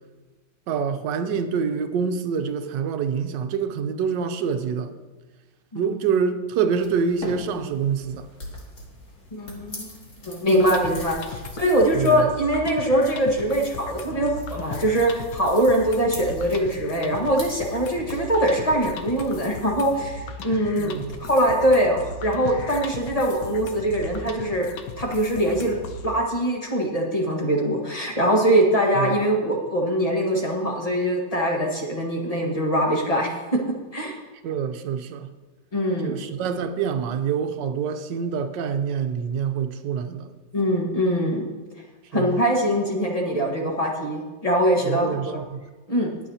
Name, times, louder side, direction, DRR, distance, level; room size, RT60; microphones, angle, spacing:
voice 1, 0.7-4.9 5.7-8.3 11.9-12.3 20.8-21.1 29.0-29.2 34.4-35.3 36.0-40.3 42.1-42.4 44.8-45.6, right 6 dB, 80° right, 1.4 m, -26 dB
sound 1, 6.8-19.5, left 1 dB, 45° left, 2.3 m, -43 dB
voice 2, 9.3-10.0 10.2-24.7 25.0-25.7 26.0-33.6 33.9-34.2 35.7-36.2 40.5-41.4 42.1-45.4 45.9-46.1, equal, 20° left, 1.4 m, -22 dB
sound 2, 10.6-26.1, left 3 dB, 80° left, 1.5 m, -37 dB
20.5 x 7.2 x 2.8 m
omnidirectional pair, 1.9 m